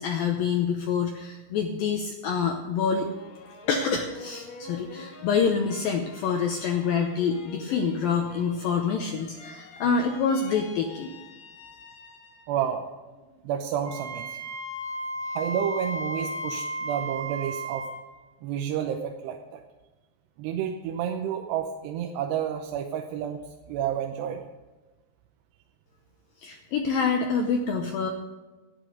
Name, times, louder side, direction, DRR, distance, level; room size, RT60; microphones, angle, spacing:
voice 1, 0.0-3.1 3.7-11.1 26.4-28.1, left 6 dB, 80° left, 4 dB, 2.1 m, -26 dB
sound 1, 2.8-12.7 13.1-13.8, left 4 dB, 60° left, 1.8 m, -47 dB
voice 2, 12.5-12.8 13.4-14.4 15.4-17.9 18.4-19.6 20.4-23.4 23.7-24.4, right 9 dB, 80° right, 4 dB, 2.8 m, -30 dB
Wind instrument woodwind instrument, 13.8-17.9, right 1 dB, 20° right, 2.8 m, -34 dB
13.5 x 11.0 x 5.0 m, 1.2 s
omnidirectional pair, 5.1 m